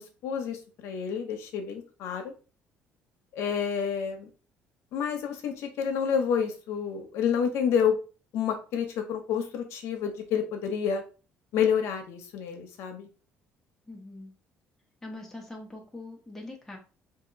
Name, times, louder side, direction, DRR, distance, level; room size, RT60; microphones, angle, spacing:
voice 1, 0.0-2.3 3.3-4.3 4.9-8.0 8.3-11.0 11.5-13.1, left 7 dB, 75° left, 4 dB, 0.8 m, -29 dB
voice 2, 13.9-14.3 15.0-16.8, left 2 dB, 5° left, 0 dB, 0.9 m, -42 dB
2.8 x 2.8 x 3.8 m, 0.35 s
cardioid pair, 155°, 5 cm